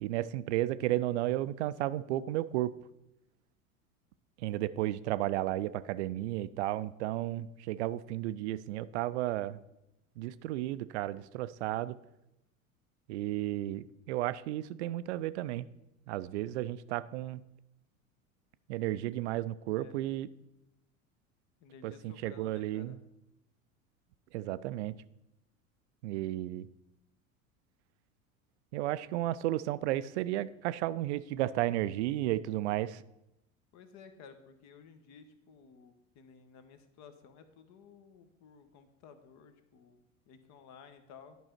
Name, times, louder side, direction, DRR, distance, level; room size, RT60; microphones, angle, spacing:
voice 1, 0.0-2.7 4.4-9.6 10.2-12.0 13.1-15.7 16.1-17.4 18.7-20.3 21.8-23.0 24.3-25.0 26.0-26.7 28.7-33.0, right 15 dB, 55° right, 15 dB, 0.5 m, -33 dB
voice 2, 19.6-20.1 21.6-23.0 33.7-41.4, left 6 dB, 40° left, 10 dB, 1.1 m, -55 dB
11.0 x 5.4 x 4.5 m, 0.90 s
figure-of-eight pair, 80°, 41 cm